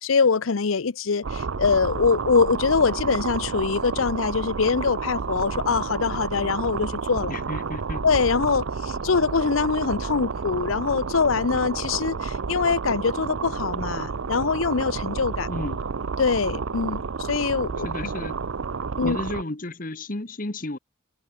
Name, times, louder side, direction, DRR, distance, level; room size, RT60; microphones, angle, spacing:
voice 1, 0.0-7.3 8.0-15.5 16.2-18.1 19.0-19.2, left 5 dB, 85° left, 0.7 m, -23 dB
sound 1, 1.2-19.4, right 5 dB, 80° right, 0.7 m, -30 dB
voice 2, 7.3-8.0 15.5-15.8 17.8-18.4 19.0-20.8, left 2 dB, 40° left, 1.4 m, -33 dB
head